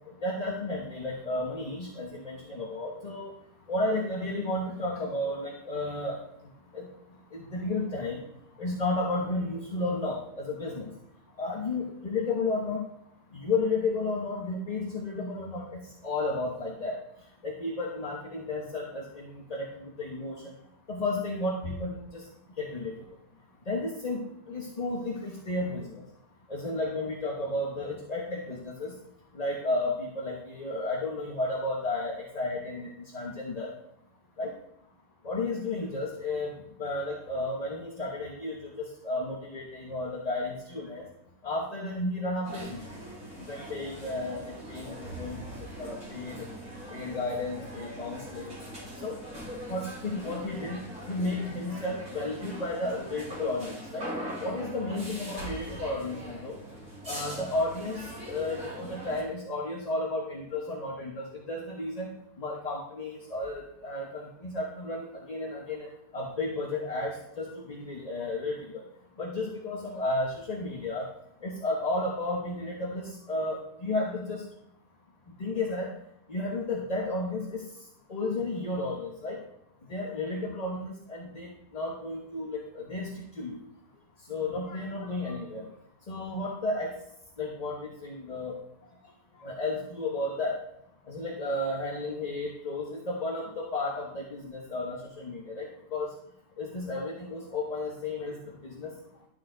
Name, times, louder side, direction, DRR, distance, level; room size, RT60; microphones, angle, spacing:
voice 1, 0.2-3.3 3.7-6.2 6.7-6.9 7.3-8.2 8.6-10.9 11.4-12.8 13.3-17.0 17.4-20.5 20.9-22.2 22.6-22.9 23.7-26.0 26.5-28.9 29.3-32.9 33.1-33.7 34.4-34.5 35.2-36.5 36.8-41.0 41.4-42.8 43.4-45.4 45.8-46.5 46.9-48.5 49.0-49.1 49.7-54.1 54.4-56.6 57.0-68.8 69.2-71.1 71.4-74.4 75.4-75.9 76.3-77.6 78.1-79.4 79.9-83.6 84.3-85.7 86.1-86.9 87.4-88.5 89.4-90.6 91.1-96.1 96.6-98.4 98.6-98.9, left 2 dB, 25° left, -1 dB, 1.1 m, -33 dB
sound 1, 42.4-59.2, right 1 dB, 65° right, 5.6 m, -41 dB
12.0 x 7.8 x 3.9 m, 0.77 s
omnidirectional pair, 1.7 m